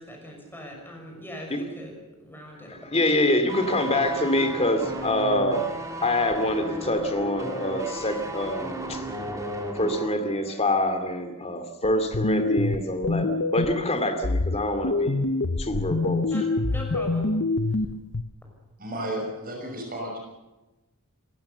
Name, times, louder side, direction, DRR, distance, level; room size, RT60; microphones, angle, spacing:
voice 1, 0.0-1.9 2.2-2.9 16.3-16.4 16.7-17.3, equal, 10° left, 1 dB, 6.2 m, -40 dB
voice 2, 2.7-5.7 6.0-9.0 9.7-15.2 15.6-16.2, left 1 dB, 30° left, 7 dB, 2.6 m, -25 dB
sound 1, 3.5-10.2 10.4-10.6, right 1 dB, 15° right, 3.0 m, -34 dB
sound 2, 11.8-13.8 14.2-18.2, left 3 dB, 55° left, 0.8 m, -26 dB
voice 3, 18.8-20.2, right 1 dB, 40° right, 0 dB, 5.8 m, -33 dB
28.5 x 15.5 x 6.9 m, 1.1 s
head